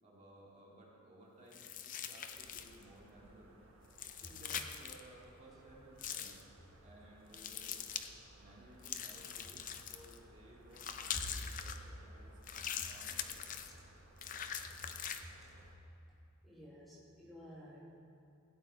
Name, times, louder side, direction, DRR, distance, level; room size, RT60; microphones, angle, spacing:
voice 1, 0.0-3.5 4.2-6.5 6.8-7.8 8.3-12.4 12.9-13.4, right 1 dB, 35° right, -4 dB, 2.1 m, -59 dB
sound 1, 1.5-2.8 3.9-5.0 6.0-6.4 7.3-8.1 8.8-10.2 10.7-11.8 12.4-13.7 14.2-15.2, left 8 dB, 40° left, 0.5 m, -43 dB
sound 2, 2.3-15.7, right 1 dB, 85° right, 1.2 m, -61 dB
voice 2, 16.4-17.8, equal, ahead, -6 dB, 1.8 m, -51 dB
16.0 x 9.1 x 4.2 m, 2.6 s
head